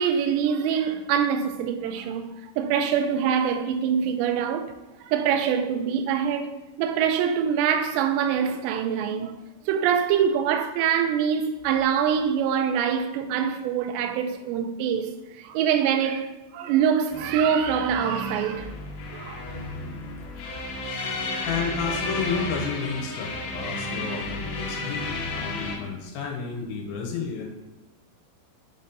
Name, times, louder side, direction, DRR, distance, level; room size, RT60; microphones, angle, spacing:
voice 1, 0.0-2.3 2.6-4.7 5.0-9.4 9.7-18.7 19.1-19.6, right 8 dB, 80° right, 2.7 m, -24 dB
sound 1, 17.1-25.8, left 2 dB, 60° left, 2.7 m, -33 dB
voice 2, 21.4-27.5, left 5 dB, 80° left, 3.1 m, -31 dB
7.2 x 4.1 x 4.0 m
omnidirectional pair, 5.3 m